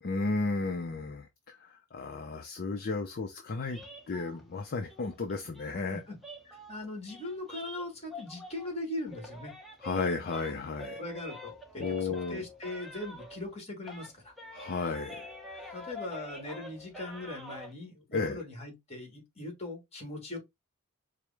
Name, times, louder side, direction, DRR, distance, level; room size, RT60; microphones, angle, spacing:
voice 1, 0.0-3.8 4.1-6.0 9.8-11.0 11.8-12.4 14.5-15.3 15.5-15.8 18.1-18.4, left 3 dB, 45° left, 0.5 m, -34 dB
sound 1, 3.7-8.8 9.1-13.6 13.8-17.7, left 1 dB, ahead, 0.7 m, -47 dB
voice 2, 6.4-9.5 11.0-14.3 15.7-20.4, left 2 dB, 30° left, 1.5 m, -40 dB
4.7 x 2.0 x 3.3 m
head